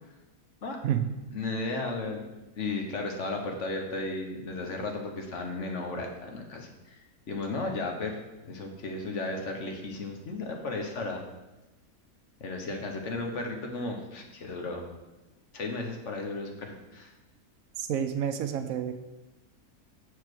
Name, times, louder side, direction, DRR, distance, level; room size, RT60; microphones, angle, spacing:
voice 1, 1.3-2.3 2.6-8.2 8.4-11.2 12.4-14.9 15.5-17.1, left 2 dB, 55° left, 3 dB, 1.2 m, -34 dB
voice 2, 17.8-18.9, right 9 dB, 75° right, 8 dB, 1.0 m, -29 dB
6.8 x 4.7 x 6.1 m, 1.0 s
omnidirectional pair, 1.5 m